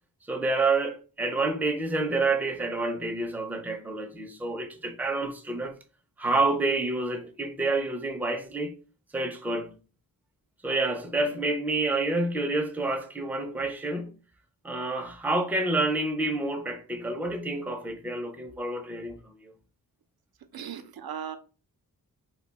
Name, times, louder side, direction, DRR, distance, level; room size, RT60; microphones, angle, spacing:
voice 1, 0.3-5.7 6.2-8.7 9.1-9.8 10.6-14.1 14.6-19.5, right 2 dB, 5° right, 0.4 m, -28 dB
voice 2, 20.5-21.4, right 8 dB, 75° right, 0.5 m, -37 dB
2.6 x 2.2 x 3.9 m
wide cardioid pair, 115°, 37 cm